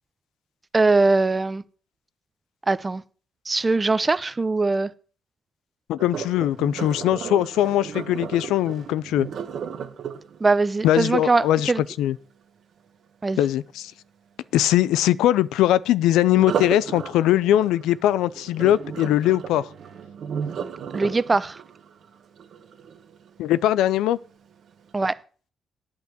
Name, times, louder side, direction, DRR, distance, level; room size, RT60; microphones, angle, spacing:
voice 1, 0.7-1.6 2.7-3.0 3.5-4.9 10.4-11.8 13.2-13.4 20.9-21.6 24.9-25.2, right 3 dB, 25° right, 0.6 m, -21 dB
voice 2, 5.9-9.3 10.8-11.7 12.0-12.2 13.4-13.9 14.5-19.7 23.4-24.2, left 13 dB, 90° left, 0.4 m, -21 dB
Sink (filling or washing), 6.0-11.9 16.3-23.4 23.9-24.2 24.7-24.8, right 7 dB, 60° right, 1.3 m, -34 dB
9.0 x 5.3 x 7.9 m
cardioid pair, 90°, 0 cm